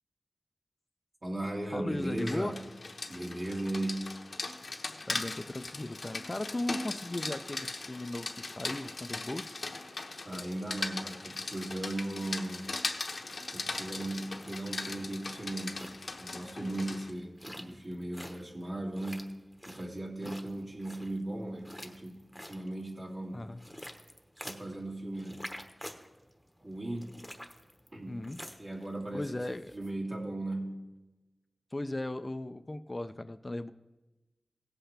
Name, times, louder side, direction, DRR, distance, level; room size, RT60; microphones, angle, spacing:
voice 1, 1.2-2.6 3.1-4.2 10.2-12.8 13.5-19.4 19.6-23.4 24.4-25.5 26.6-27.1 27.9-28.3 28.6-29.4 29.7-30.8, right 1 dB, 50° right, -2 dB, 2.5 m, -37 dB
voice 2, 1.7-2.5 5.1-9.6 20.2-20.3 23.3-23.6 28.1-28.4 29.1-29.7 31.7-33.7, left 1 dB, 35° left, 11 dB, 0.4 m, -37 dB
Rain, 2.0-17.1, left 3 dB, 70° left, 0.9 m, -39 dB
sound 1, 13.6-29.9, equal, ahead, 1.1 m, -50 dB
17.0 x 7.9 x 3.4 m, 1.1 s
cardioid pair, 50°, 0 cm